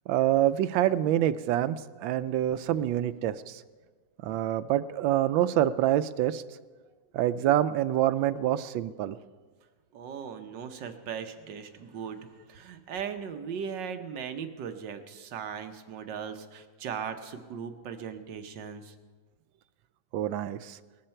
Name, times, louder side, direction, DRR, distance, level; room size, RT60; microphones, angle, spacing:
voice 1, 0.1-1.8 2.0-3.6 4.2-6.4 7.1-9.2 20.1-20.8, right 12 dB, 90° right, 14 dB, 1.3 m, -26 dB
voice 2, 9.9-18.9, right 7 dB, 70° right, 8 dB, 1.5 m, -38 dB
19.0 x 13.5 x 4.4 m, 1.4 s
omnidirectional pair, 2.0 m